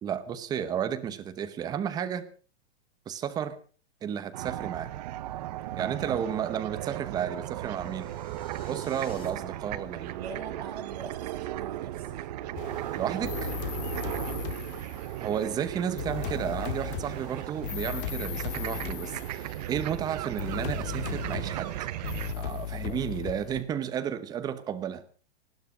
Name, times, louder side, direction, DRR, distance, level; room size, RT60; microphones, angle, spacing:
voice 1, 0.0-2.2 3.1-3.5 4.0-4.9 5.8-8.1 8.7-10.2 13.0-13.5 15.2-21.7 22.3-25.0, right 9 dB, 10° right, 11 dB, 0.9 m, -32 dB
sound 1, 4.3-22.3, right 14 dB, 40° right, 1.0 m, -36 dB
sound 2, 6.7-9.3, left 5 dB, 15° left, 3.5 m, -54 dB
voice 2, 8.8-9.3 9.9-12.1 14.1-14.4 19.9-20.2 22.9-23.0, right 6 dB, 70° right, 3 dB, 6.7 m, -44 dB
sound 3, 12.6-15.3 16.0-19.9 20.4-23.6, left 10 dB, 50° left, 2.2 m, -37 dB
19.5 x 15.0 x 5.0 m, 0.40 s
supercardioid pair, 170°, 33 cm